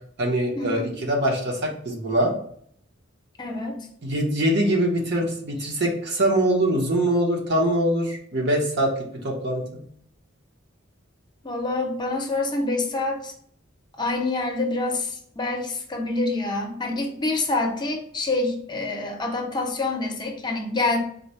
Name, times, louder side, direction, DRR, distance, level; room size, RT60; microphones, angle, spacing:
voice 1, 0.2-2.3 4.0-8.9 9.2-9.8, right 1 dB, 60° right, 0 dB, 1.0 m, -23 dB
voice 2, 3.4-3.8 11.4-13.3 14.0-21.0, left 2 dB, 20° left, 2 dB, 0.7 m, -26 dB
3.9 x 2.2 x 4.3 m, 0.64 s
head